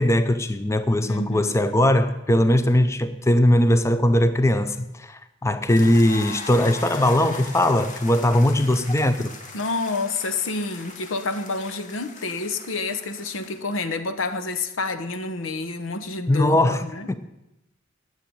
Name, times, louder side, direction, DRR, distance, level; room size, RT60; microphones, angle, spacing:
voice 1, 0.0-9.3 16.3-17.1, left 1 dB, 15° left, 0.5 m, -20 dB
voice 2, 1.1-1.6 9.5-17.2, left 3 dB, 85° left, 0.9 m, -29 dB
sound 1, 5.7-13.8, left 3 dB, 40° left, 1.3 m, -40 dB
9.9 x 7.7 x 8.9 m
head